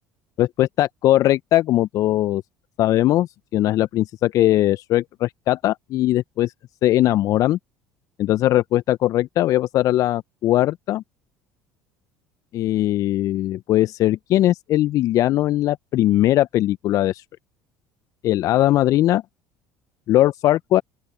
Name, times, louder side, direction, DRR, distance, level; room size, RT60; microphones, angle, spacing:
voice 1, 0.4-2.4 2.8-6.5 6.8-7.6 8.2-11.0 12.5-17.2 18.2-19.2 20.1-20.8, left 14 dB, 55° left, 0.8 m, -20 dB
open air
hypercardioid pair, 65°, 7 cm